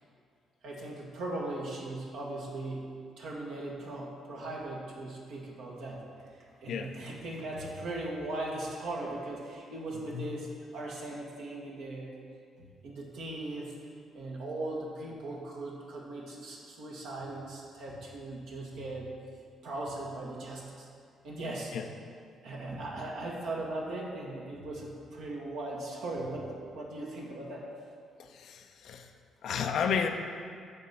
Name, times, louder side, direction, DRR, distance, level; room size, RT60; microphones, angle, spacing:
voice 1, 0.6-6.0 6.6-12.2 12.6-13.8 14.1-19.2 19.6-20.9 21.2-21.7 22.4-27.7, right 2 dB, 70° right, -3 dB, 1.4 m, -39 dB
voice 2, 28.2-29.1 29.4-30.1, left 7 dB, 65° left, 5 dB, 0.5 m, -32 dB
8.8 x 3.7 x 5.7 m, 2.2 s
hypercardioid pair, 50°, 0 cm